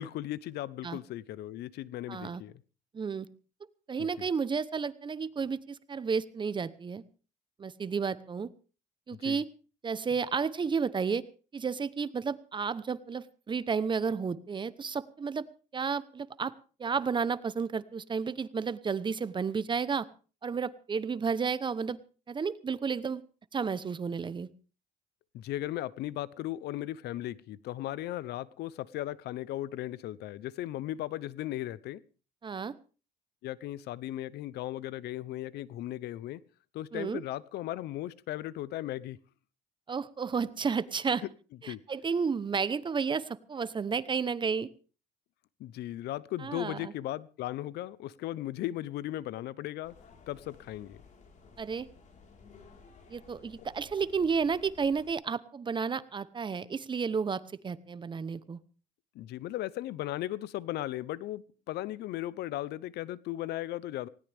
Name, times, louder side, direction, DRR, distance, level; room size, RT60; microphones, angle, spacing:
voice 1, 0.0-2.5 4.2-4.3 9.1-9.4 25.3-32.0 33.4-36.4 36.7-39.2 41.7-41.8 45.6-49.9 50.3-51.0 59.1-64.1, left 14 dB, 75° left, 20 dB, 0.8 m, -37 dB
voice 2, 2.1-2.4 2.9-3.3 3.9-7.0 7.6-8.5 9.1-9.5 9.8-11.2 11.5-15.5 15.7-16.5 16.8-20.1 20.4-22.0 22.3-23.2 23.5-24.5 32.4-32.7 36.9-37.2 39.9-41.2 41.6-44.7 46.4-46.9 51.6-51.9 53.1-58.6, right 5 dB, 30° right, 16 dB, 0.9 m, -32 dB
sound 1, 49.8-55.1, left 5 dB, 45° left, 4.4 m, -56 dB
19.5 x 17.5 x 3.5 m, 0.37 s
cardioid pair, 110°, 17 cm